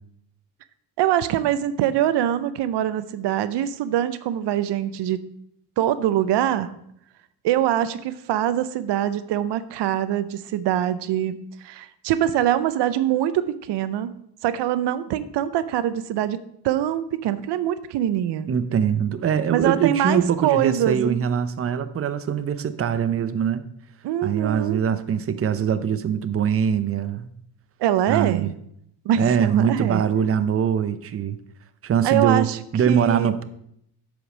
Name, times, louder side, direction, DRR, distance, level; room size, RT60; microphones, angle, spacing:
voice 1, 1.0-5.3 5.8-6.7 7.4-14.1 14.4-18.5 19.5-21.2 24.0-24.8 27.8-28.4 29.0-30.0 32.0-32.6 32.9-33.3, right 11 dB, 85° right, 14 dB, 0.6 m, -23 dB
voice 2, 18.5-23.6 24.2-27.3 28.1-28.5 29.2-31.4 31.8-32.5 32.7-33.4, right 7 dB, 35° right, 12 dB, 0.6 m, -23 dB
7.9 x 5.2 x 6.1 m, 0.73 s
cardioid pair, 110°, 40 cm